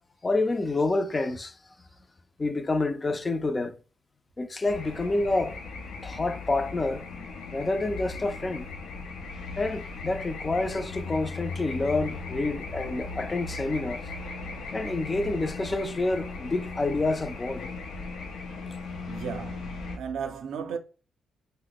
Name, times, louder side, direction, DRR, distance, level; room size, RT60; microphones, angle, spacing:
voice 1, 0.2-1.6 2.4-3.8 4.4-5.6 6.0-7.1 7.5-8.7 9.6-14.0 14.7-17.6, left 2 dB, 25° left, 0.3 m, -28 dB
sound 1, 4.7-20.0, left 3 dB, 85° left, 0.5 m, -38 dB
voice 2, 19.1-20.8, right 7 dB, 75° right, 0.4 m, -35 dB
2.8 x 2.0 x 3.9 m
cardioid pair, 90°, 0 cm